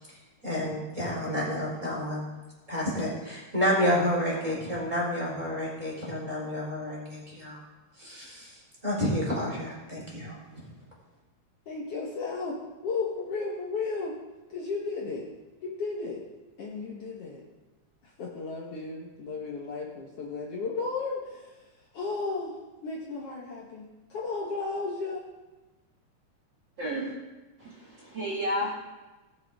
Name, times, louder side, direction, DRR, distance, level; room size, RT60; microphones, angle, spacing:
voice 1, 0.4-2.2 2.7-7.6 8.0-8.6 8.8-10.4, equal, 10° right, -5 dB, 4.0 m, -29 dB
voice 2, 11.7-14.1 14.5-15.3 15.6-16.2 16.6-17.4 18.0-21.7 21.9-22.5 22.8-25.2, left 4 dB, 60° left, -3 dB, 1.9 m, -34 dB
voice 3, 26.8-27.1 27.6-28.7, equal, 40° right, -6 dB, 2.5 m, -31 dB
18.5 x 7.6 x 3.6 m, 1.2 s
omnidirectional pair, 3.4 m